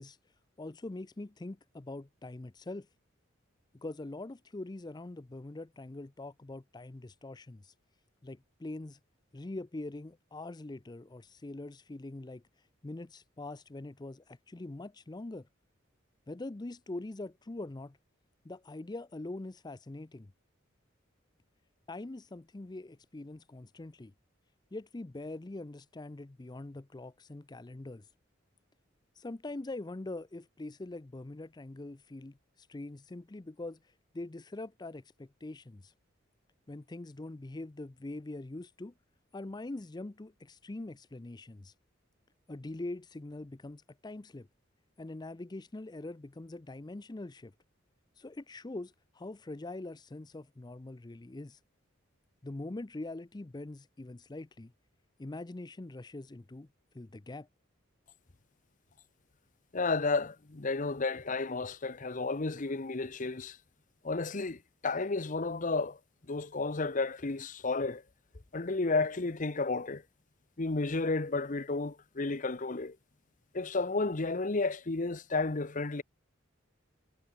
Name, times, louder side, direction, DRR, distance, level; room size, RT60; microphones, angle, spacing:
voice 1, 0.0-2.9 3.7-7.7 8.2-9.0 9.3-15.5 16.3-18.0 18.4-20.3 21.9-24.1 24.7-28.1 29.1-35.9 36.7-38.9 39.3-41.7 42.5-44.5 45.0-47.5 48.1-51.6 52.4-54.7 55.2-56.7 56.9-57.5, left 2 dB, 20° left, 0.5 m, -43 dB
voice 2, 59.7-63.6 64.0-66.0 66.3-68.0 68.5-70.0 70.6-73.0 73.5-76.0, left 3 dB, 40° left, 0.9 m, -32 dB
head